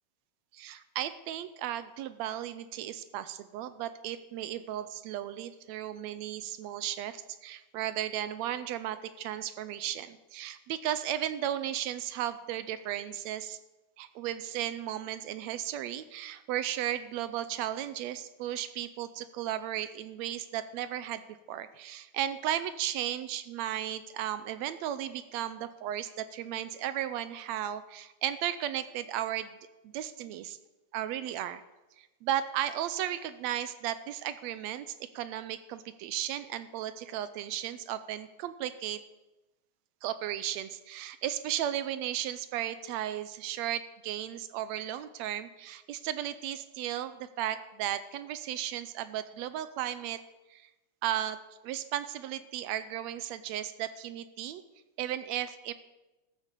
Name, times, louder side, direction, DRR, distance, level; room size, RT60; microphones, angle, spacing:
voice 1, 0.5-13.6 14.0-21.2 21.5-29.6 29.8-30.6 30.9-31.6 32.0-39.0 40.0-50.2 50.5-50.7 51.0-51.4 51.6-54.6 55.0-55.7, right 11 dB, 80° right, 13 dB, 1.7 m, -35 dB
14.0 x 9.4 x 6.8 m, 1.0 s
omnidirectional pair, 3.5 m